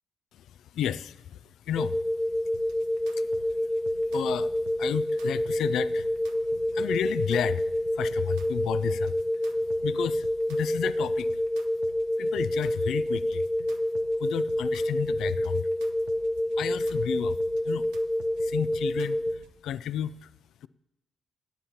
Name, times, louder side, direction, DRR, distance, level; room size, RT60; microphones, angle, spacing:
voice 1, 0.3-2.7 3.0-11.4 12.2-13.5 14.2-15.7 16.5-17.4 17.6-17.9 18.4-20.3 20.6-20.7, left 10 dB, 70° left, 17 dB, 0.3 m, -33 dB
sound 1, 1.8-19.3, left 1 dB, 5° left, 0.8 m, -28 dB
sound 2, 2.5-19.5, right 6 dB, 80° right, 0.6 m, -51 dB
20.5 x 9.7 x 2.9 m, 0.90 s
hypercardioid pair, 45°, 0 cm